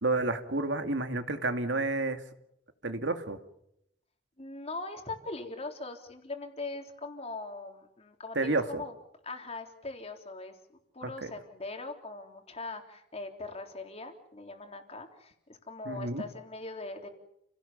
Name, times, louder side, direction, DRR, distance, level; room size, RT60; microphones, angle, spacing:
voice 1, 0.0-2.2 2.8-3.4 8.4-8.8 11.2-11.3 15.9-16.2, right 2 dB, 85° right, 7 dB, 2.4 m, -30 dB
voice 2, 4.4-8.9 9.2-10.6 10.9-17.1, left 3 dB, 35° left, 4 dB, 3.7 m, -41 dB
30.0 x 17.5 x 7.2 m, 0.79 s
head